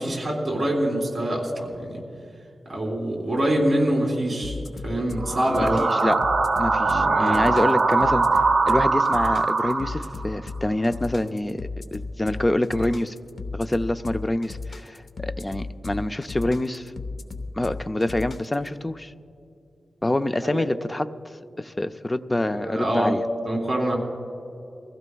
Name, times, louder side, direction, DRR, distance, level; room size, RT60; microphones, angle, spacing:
voice 1, 0.0-2.0 2.7-5.8 6.8-7.5 20.0-20.1 20.4-20.6 22.5-23.1 23.4-24.0, right 1 dB, 20° right, -2 dB, 3.5 m, -25 dB
sound 1, 4.4-18.7, left 3 dB, 55° left, 0.8 m, -35 dB
sound 2, 5.2-10.3, right 3 dB, 55° right, 1.0 m, -22 dB
voice 2, 5.5-6.2 6.6-8.3 8.6-13.1 13.5-16.9 17.6-19.1 20.0-21.1 21.6-23.2, left 1 dB, 15° left, 10 dB, 0.4 m, -26 dB
23.5 x 15.5 x 2.3 m, 2.7 s
wide cardioid pair, 125°, 0 cm